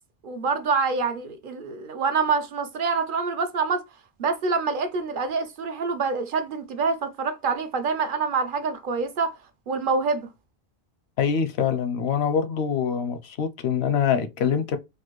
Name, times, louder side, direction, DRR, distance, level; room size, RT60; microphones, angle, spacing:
voice 1, 0.2-3.8 4.2-9.3 9.7-10.3, right 4 dB, 60° right, 0.7 m, -26 dB
voice 2, 11.2-14.8, left 7 dB, 80° left, 0.9 m, -24 dB
4.1 x 2.5 x 3.0 m
omnidirectional pair, 1.0 m